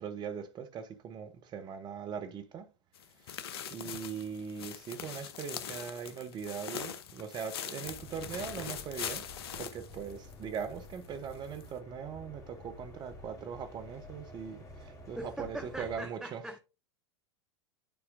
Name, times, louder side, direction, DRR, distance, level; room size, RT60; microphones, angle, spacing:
voice 1, 0.0-2.7 3.7-9.2 9.6-16.5, right 7 dB, 30° right, 1.0 m, -40 dB
sound 1, 2.9-10.6 11.0-11.1 11.6-11.7, left 8 dB, 60° left, 0.8 m, -42 dB
sound 2, 7.8-16.0, left 1 dB, 25° left, 2.7 m, -50 dB
voice 2, 15.2-16.6, right 1 dB, 5° right, 0.7 m, -42 dB
10.5 x 4.7 x 2.6 m
figure-of-eight pair, 85°, 14 cm